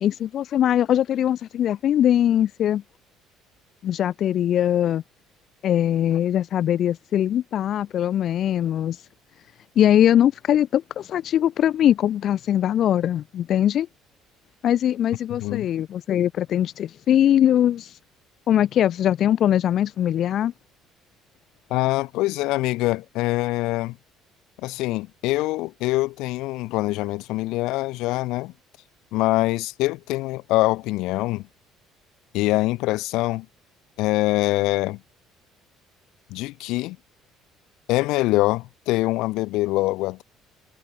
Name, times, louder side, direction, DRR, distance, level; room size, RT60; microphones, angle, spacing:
voice 1, 0.0-2.8 3.8-5.0 5.6-9.0 9.8-13.9 14.6-18.0 18.5-20.5, left 10 dB, 40° left, 0.7 m, -21 dB
voice 2, 15.3-15.7 21.7-24.0 24.6-28.5 29.1-31.5 32.3-33.5 34.0-35.0 36.3-37.0 37.9-40.2, left 19 dB, 70° left, 1.1 m, -24 dB
cardioid pair, 175°, 0 cm